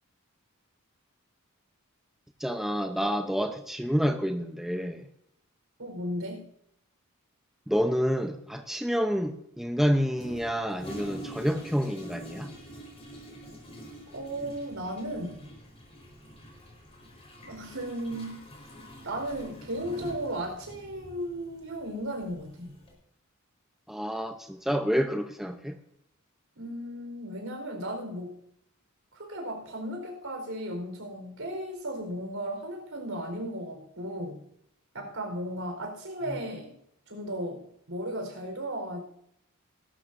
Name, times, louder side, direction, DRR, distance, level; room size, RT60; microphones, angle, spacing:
voice 1, 2.4-5.0 7.7-12.5 23.9-25.8, equal, ahead, 0.8 m, -28 dB
voice 2, 5.8-6.4 14.1-15.5 17.4-18.4 19.0-22.7 26.6-28.4 29.1-34.4 34.9-36.7 37.1-39.0, right 1 dB, 70° right, 4.6 m, -35 dB
Toilet flush, 10.1-22.9, right 1 dB, 30° left, 4.5 m, -46 dB
20.5 x 12.5 x 2.7 m
head